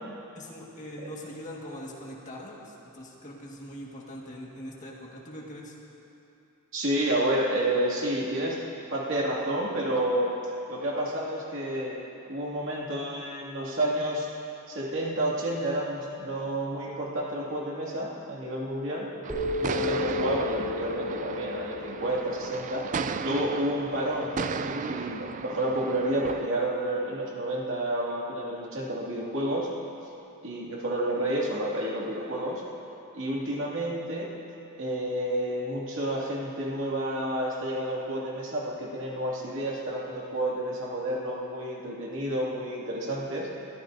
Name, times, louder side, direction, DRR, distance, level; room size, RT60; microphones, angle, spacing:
voice 1, 0.3-5.8, equal, 35° left, -3 dB, 1.7 m, -42 dB
voice 2, 6.7-8.6 8.9-10.3 10.7-11.9 12.3-14.3 14.7-19.1 19.6-22.9 23.2-29.7 30.4-32.6 33.1-34.3 34.8-43.5, right 1 dB, 60° right, -5 dB, 2.4 m, -30 dB
sound 1, 19.2-26.5, right 5 dB, 35° right, 0.3 m, -35 dB
sound 2, 19.3-23.4, left 4 dB, 5° right, 3.3 m, -34 dB
22.0 x 14.0 x 2.7 m, 2.8 s
head